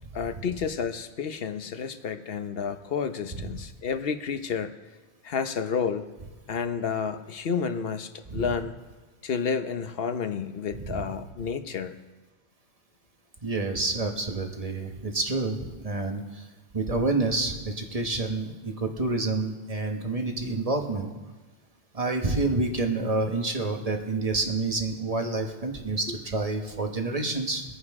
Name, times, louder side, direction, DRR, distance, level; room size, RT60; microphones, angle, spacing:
voice 1, 0.1-4.8 5.2-6.1 6.5-8.7 9.2-12.0, left 6 dB, 70° left, 9 dB, 1.0 m, -30 dB
voice 2, 10.7-11.0 13.4-16.4 16.7-21.1 21.9-27.6, right 3 dB, 35° right, 3 dB, 1.4 m, -28 dB
23.5 x 9.4 x 3.7 m, 1.2 s
omnidirectional pair, 1.0 m